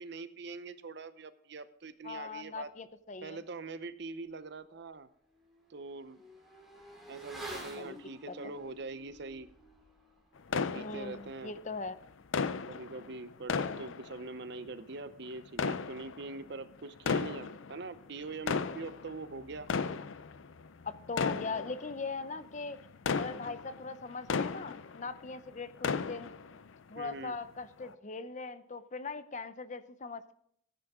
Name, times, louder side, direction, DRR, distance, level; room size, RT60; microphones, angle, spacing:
voice 1, 0.0-2.7 3.2-5.1 5.7-6.2 7.1-9.5 10.7-11.5 12.7-19.7 27.0-27.3, right 3 dB, 60° right, 13 dB, 0.8 m, -43 dB
voice 2, 2.0-3.4 7.7-8.0 8.3-8.5 10.8-12.0 20.8-22.8 23.1-26.3 26.9-30.3, left 4 dB, 40° left, 13 dB, 0.6 m, -40 dB
Motorcycle / Accelerating revving vroom, 4.3-4.4 4.7-14.8 15.0-15.1, right 1 dB, ahead, 3.2 m, -51 dB
sound 1, 10.5-11.6 12.3-14.7 15.5-16.5 17.0-17.9 18.3-25.3 25.6-26.7 27.1-27.2 27.8-27.9, left 5 dB, 85° left, 0.6 m, -35 dB
15.0 x 10.0 x 3.7 m, 0.68 s
head